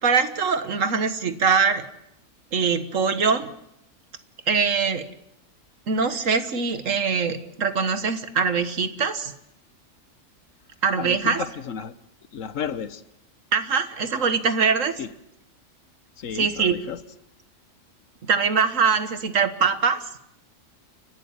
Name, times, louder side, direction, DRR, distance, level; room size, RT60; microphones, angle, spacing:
voice 1, 0.0-1.9 2.5-3.5 4.5-5.1 5.9-9.3 10.8-11.4 13.5-14.9 16.3-16.8 18.2-20.0, right 5 dB, 70° right, 11 dB, 1.8 m, -22 dB
voice 2, 11.0-11.9 12.3-13.0 15.0-15.1 16.2-17.0, left 8 dB, 75° left, 14 dB, 1.4 m, -32 dB
29.5 x 12.0 x 8.8 m, 0.79 s
omnidirectional pair, 1.4 m